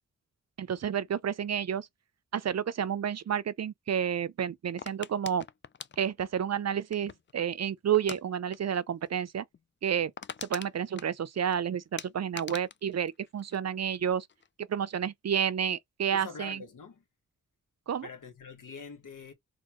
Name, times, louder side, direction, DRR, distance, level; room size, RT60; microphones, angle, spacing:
voice 1, 0.6-1.9 2.3-5.5 6.0-9.4 9.8-10.1 10.5-14.3 14.6-16.6 17.9-18.1, right 8 dB, 50° right, 0.5 m, -30 dB
sound 1, 4.8-7.3 7.9-8.2 8.5-8.8 9.0-9.1 9.5-9.6 9.9-11.6 12.0-14.0 14.3-14.7, left 7 dB, 35° left, 0.4 m, -43 dB
voice 2, 16.1-17.0 18.0-19.3, left 5 dB, 70° left, 1.2 m, -45 dB
4.2 x 2.2 x 2.9 m
cardioid pair, 40°, 33 cm